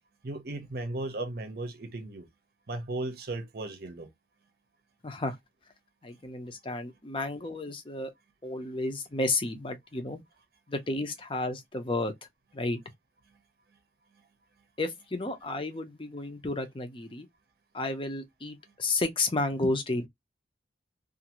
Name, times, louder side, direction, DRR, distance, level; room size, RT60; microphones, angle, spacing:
voice 1, 0.2-2.3 2.7-4.1, right 2 dB, 55° right, 0.7 m, -36 dB
voice 2, 5.0-5.3 6.0-8.1 8.4-10.2 10.7-12.1 12.5-12.8 14.8-17.3 17.7-20.1, left 2 dB, 30° left, 0.6 m, -32 dB
2.6 x 2.5 x 2.8 m
head